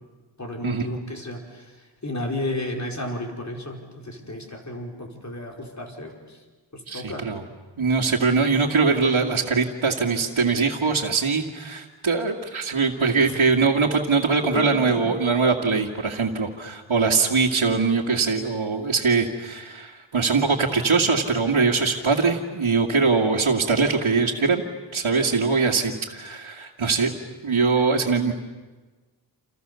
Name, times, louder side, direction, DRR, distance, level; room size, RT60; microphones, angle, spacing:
voice 1, 0.4-1.7 2.0-6.2 6.7-7.3 14.4-15.0, left 1 dB, 35° left, 1 dB, 5.0 m, -32 dB
voice 2, 6.9-7.4 7.8-24.6 24.9-27.1 27.4-28.3, right 4 dB, 75° right, -4 dB, 2.2 m, -22 dB
29.5 x 28.5 x 7.0 m, 1.3 s
wide cardioid pair, 70°, 48 cm